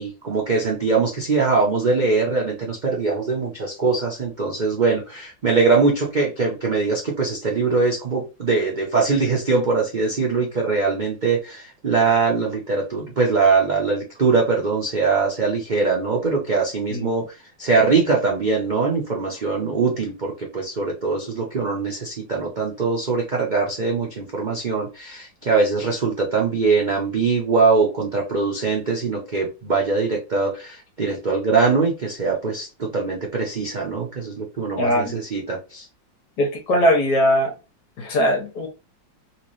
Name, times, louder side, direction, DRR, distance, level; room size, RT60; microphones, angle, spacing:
voice 1, 0.0-17.2 17.6-35.9, right 4 dB, 70° right, 0.4 m, -22 dB
voice 2, 34.8-35.2 36.4-37.5 38.0-38.7, equal, 65° left, 1.6 m, -20 dB
3.4 x 2.9 x 3.0 m
omnidirectional pair, 2.0 m